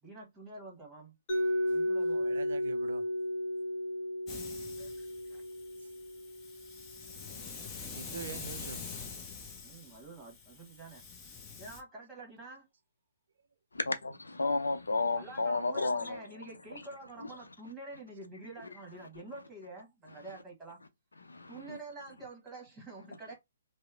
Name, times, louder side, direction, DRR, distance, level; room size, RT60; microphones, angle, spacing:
voice 1, 0.0-1.1 1.7-2.3 4.8-4.9 5.2-5.4 9.6-11.0 11.6-12.7 15.2-20.8 21.5-23.3, right 2 dB, 10° right, 1.3 m, -47 dB
Mallet percussion, 1.3-7.1, left 1 dB, 35° left, 1.3 m, -34 dB
voice 2, 2.1-3.2 7.9-8.9, right 6 dB, 65° right, 0.4 m, -44 dB
Hiss, 4.3-11.8, left 5 dB, 20° left, 0.6 m, -46 dB
voice 3, 13.7-16.2 21.2-21.5, left 3 dB, 85° left, 0.5 m, -31 dB
2.8 x 2.0 x 2.4 m
hypercardioid pair, 135°, 0 cm